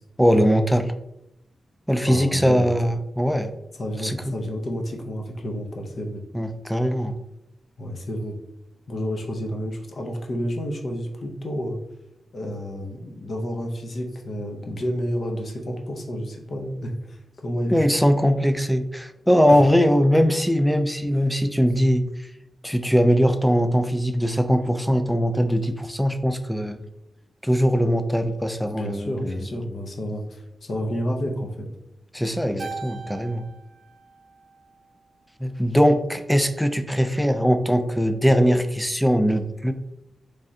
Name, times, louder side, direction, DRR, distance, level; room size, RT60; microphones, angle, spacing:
voice 1, 0.2-0.9 1.9-3.5 4.0-4.2 6.3-7.1 17.7-22.3 22.6-26.8 27.4-29.5 32.1-33.4 35.4-39.7, equal, ahead, 8 dB, 0.3 m, -21 dB
voice 2, 2.1-2.7 3.8-6.2 7.8-8.4 8.9-11.8 12.3-17.8 19.5-19.6 28.7-31.7, equal, 55° left, 2 dB, 0.6 m, -30 dB
Keyboard (musical), 32.6-35.1, right 4 dB, 55° right, 0.6 m, -40 dB
3.6 x 3.2 x 2.7 m, 0.84 s
wide cardioid pair, 110°, 0 cm